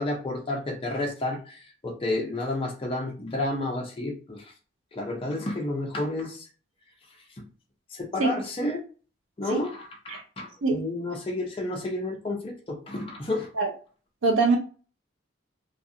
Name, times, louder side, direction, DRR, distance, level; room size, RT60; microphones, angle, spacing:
voice 1, 0.0-4.4 4.9-6.5 7.9-8.8 9.4-13.5, left 2 dB, 25° left, 0.5 m, -31 dB
voice 2, 14.2-14.6, right 3 dB, 85° right, 0.5 m, -22 dB
2.4 x 2.4 x 2.6 m
head